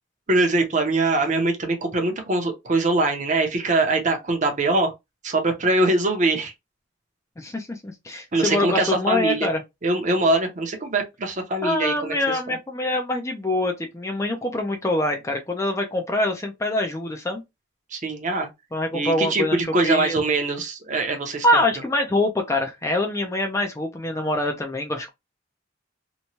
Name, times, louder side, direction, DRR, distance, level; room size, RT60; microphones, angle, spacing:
voice 1, 0.3-4.9 5.2-6.5 8.3-9.5 9.8-12.6 17.9-18.5 18.9-21.6, right 2 dB, 40° right, 0.7 m, -23 dB
voice 2, 7.4-9.6 11.6-17.4 18.7-19.6 19.8-20.2 21.4-25.1, left 1 dB, 15° left, 0.4 m, -24 dB
2.9 x 2.2 x 2.7 m
head